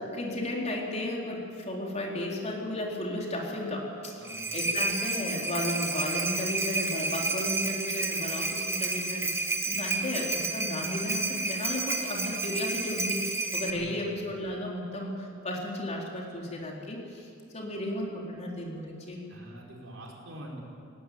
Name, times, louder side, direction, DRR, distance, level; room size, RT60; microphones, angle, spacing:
voice 1, 0.0-4.2 4.5-19.2, left 1 dB, 35° left, -2 dB, 4.1 m, -34 dB
sound 1, 4.0-13.7, right 3 dB, 15° right, 1.5 m, -31 dB
voice 2, 13.7-14.1 19.3-20.6, right 1 dB, 70° right, -1 dB, 4.9 m, -45 dB
18.5 x 18.0 x 9.4 m, 2.4 s
head